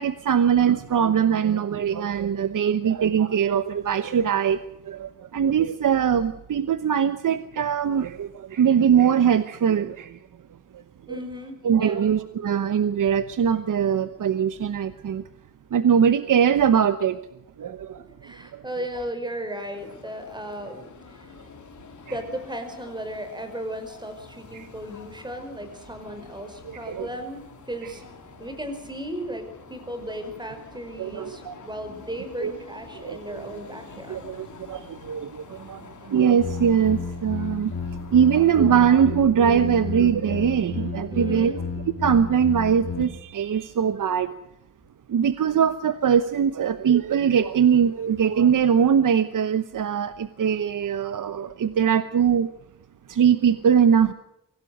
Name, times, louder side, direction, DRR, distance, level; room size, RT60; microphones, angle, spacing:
voice 1, 0.0-4.6 4.9-10.2 11.1-11.2 11.6-15.2 15.7-17.2 17.6-18.0 24.5-24.7 26.6-27.1 31.0-31.5 32.4-32.5 33.0-33.4 34.1-35.8 36.1-37.7 38.1-41.5 42.0-44.3 45.1-52.5 53.1-54.1, right 8 dB, 70° right, 12 dB, 1.1 m, -21 dB
voice 2, 11.1-12.0 18.2-21.3 22.1-28.0 28.4-34.3 41.1-41.6, equal, 15° right, 7 dB, 5.2 m, -35 dB
sound 1, 19.6-38.6, left 6 dB, 65° left, 3.7 m, -47 dB
sound 2, 36.4-43.0, left 4 dB, 45° left, 4.1 m, -32 dB
24.5 x 17.5 x 6.6 m, 0.82 s
wide cardioid pair, 155°, 33 cm